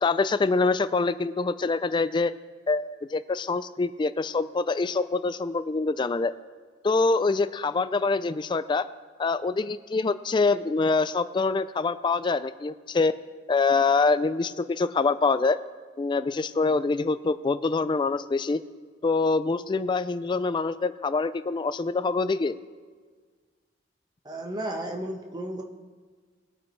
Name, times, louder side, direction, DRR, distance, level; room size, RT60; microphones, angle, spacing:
voice 1, 0.0-2.3 2.7-6.3 6.8-8.9 9.2-13.1 13.5-15.6 16.0-18.6 19.0-22.5, left 3 dB, 25° left, 13 dB, 0.3 m, -25 dB
voice 2, 24.2-25.6, right 1 dB, 25° right, 2 dB, 1.2 m, -33 dB
21.0 x 8.8 x 3.2 m, 1.5 s
head